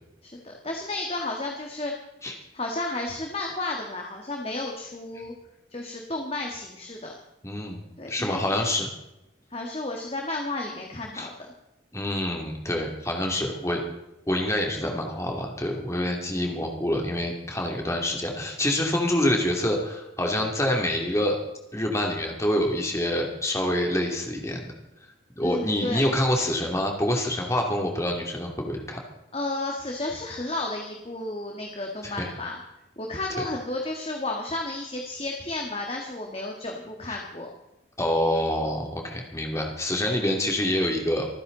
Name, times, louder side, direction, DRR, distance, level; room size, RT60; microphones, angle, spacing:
voice 1, 0.2-1.9 2.5-5.3 5.7-7.1 8.0-8.6 9.5-11.3 25.4-26.1 29.3-32.6 33.0-37.5, left 2 dB, 30° left, 1 dB, 1.7 m, -32 dB
voice 2, 7.4-7.8 8.1-8.9 11.1-11.3 11.9-13.8 14.3-21.4 21.7-24.7 25.4-29.0 32.0-32.3 33.4-33.5 37.1-37.2 38.0-41.3, left 1 dB, 15° left, 1 dB, 2.7 m, -26 dB
26.0 x 9.9 x 4.0 m, 0.91 s
head